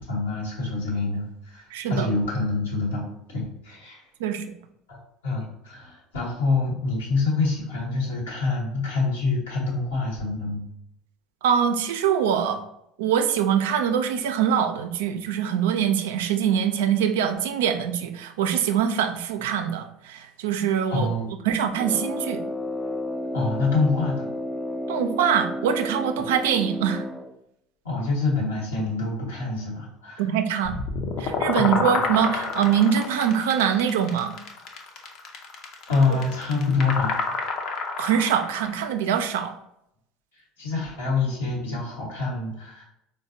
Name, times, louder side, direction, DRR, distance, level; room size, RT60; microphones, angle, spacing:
voice 1, 0.1-4.0 4.9-5.0 5.2-10.6 20.9-21.3 23.3-24.3 27.8-30.3 31.6-31.9 35.9-37.1 40.6-42.8, left 3 dB, 85° left, -3 dB, 1.0 m, -26 dB
voice 2, 1.7-2.1 4.2-4.4 11.4-12.6 13.0-21.1 21.4-22.4 24.9-27.1 30.2-30.7 31.2-34.3 38.0-39.5, right 8 dB, 80° right, 7 dB, 0.3 m, -23 dB
Brass instrument, 21.7-27.3, equal, 5° left, 0.4 m, -31 dB
sound 1, 30.6-38.8, left 4 dB, 55° left, 0.6 m, -29 dB
4.0 x 2.1 x 2.6 m, 0.79 s
hypercardioid pair, 75°, 0 cm